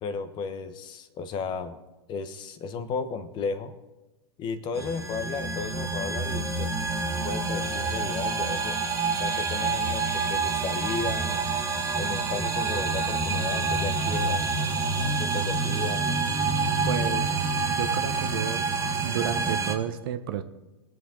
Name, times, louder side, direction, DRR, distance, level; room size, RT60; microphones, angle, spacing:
voice 1, 0.0-1.8 2.1-3.7 4.4-6.7 7.2-8.8 9.1-11.5 11.9-14.5 15.2-16.1, left 5 dB, 35° left, 11 dB, 1.1 m, -34 dB
sound 1, 4.7-19.8, right 4 dB, 20° right, 1.4 m, -27 dB
voice 2, 16.8-18.7 19.0-20.4, right 9 dB, 55° right, 9 dB, 1.0 m, -32 dB
22.0 x 7.8 x 3.9 m, 1.1 s
figure-of-eight pair, 100°, 14 cm